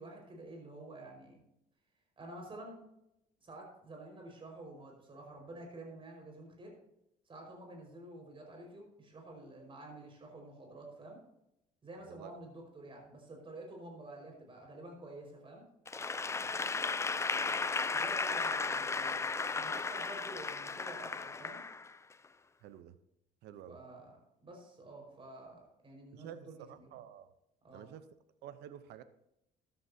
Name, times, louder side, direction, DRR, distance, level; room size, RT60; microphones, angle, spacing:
voice 1, 0.0-1.4 2.2-2.8 3.4-6.7 7.3-11.2 11.8-15.6 17.9-21.6 23.7-26.9 27.6-27.9, right 2 dB, 30° right, 1 dB, 5.2 m, -50 dB
voice 2, 12.1-12.4 16.4-16.5 22.6-23.0 23.4-23.8 26.1-27.3 27.7-28.1 28.4-29.0, right 10 dB, 80° right, 12 dB, 0.8 m, -50 dB
Applause / Crowd, 15.9-22.1, left 4 dB, 15° left, 0.4 m, -35 dB
14.0 x 11.5 x 2.8 m, 0.83 s
cardioid pair, 110°, 17 cm